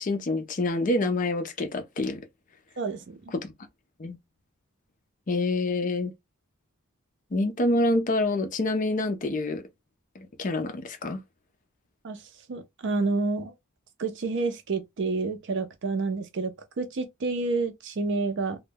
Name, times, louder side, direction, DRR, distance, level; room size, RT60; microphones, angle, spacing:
voice 1, 0.0-2.2 3.3-3.5 4.0-4.2 5.3-6.1 7.3-9.6 10.2-11.2, left 2 dB, 40° left, 0.5 m, -27 dB
voice 2, 2.8-3.3 12.0-12.2 12.5-13.5 14.0-18.6, right 3 dB, 60° right, 0.5 m, -29 dB
2.2 x 2.1 x 3.3 m
head